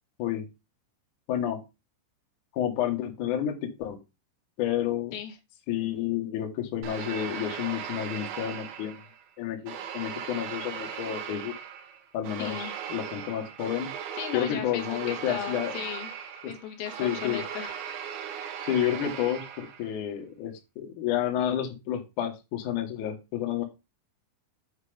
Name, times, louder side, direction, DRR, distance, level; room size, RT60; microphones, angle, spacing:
voice 1, 1.3-1.6 2.5-4.0 4.6-5.2 5.7-9.0 9.4-11.5 12.1-13.9 14.3-15.8 16.4-16.5 17.0-17.4 18.6-23.6, left 10 dB, 60° left, 3 dB, 2.3 m, -30 dB
sound 1, 6.8-9.2 9.7-20.0, right 8 dB, 70° right, 2.7 m, -38 dB
voice 2, 12.4-12.7 14.2-16.1 16.5-17.8, left 10 dB, 80° left, 4 dB, 3.4 m, -36 dB
8.3 x 4.7 x 5.0 m, 0.26 s
omnidirectional pair, 5.4 m